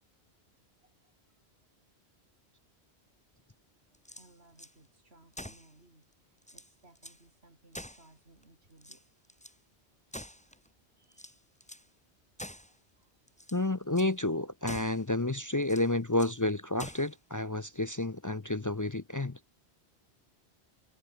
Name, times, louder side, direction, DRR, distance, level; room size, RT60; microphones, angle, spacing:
voice 1, 0.8-1.4 3.9-6.1 6.5-9.0 10.5-10.6 11.0-11.4 12.6-13.1, right 2 dB, 70° right, 5.6 m, -62 dB
sound 1, 3.9-4.7 5.3-5.7 6.1-6.2 6.4-7.2 7.7-8.4 8.8-9.6 10.1-10.7 11.1-11.9 12.4-12.8 13.3-13.6 13.9-14.1 14.6-15.1 15.6-16.4 16.8-17.2, equal, 5° left, 3.3 m, -46 dB
voice 2, 13.5-19.4, left 2 dB, 25° left, 0.5 m, -30 dB
omnidirectional pair, 1.1 m